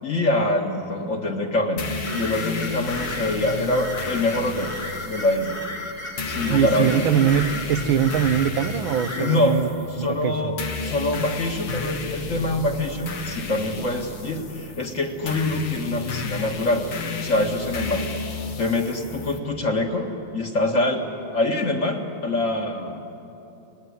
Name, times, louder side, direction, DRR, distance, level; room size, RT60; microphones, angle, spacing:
voice 1, 0.0-4.7 5.1-5.6 6.2-7.1 9.2-9.6 10.0-16.8 17.2-18.0 18.6-21.0 21.3-23.0, left 2 dB, 40° left, 2 dB, 2.2 m, -25 dB
sound 1, 1.8-19.4, left 4 dB, 75° left, 2.3 m, -33 dB
sound 2, 2.0-9.4, left 2 dB, 15° left, 1.3 m, -35 dB
voice 2, 6.5-10.6, right 9 dB, 85° right, 10 dB, 1.8 m, -22 dB
26.0 x 19.5 x 9.7 m, 2.9 s
omnidirectional pair, 2.1 m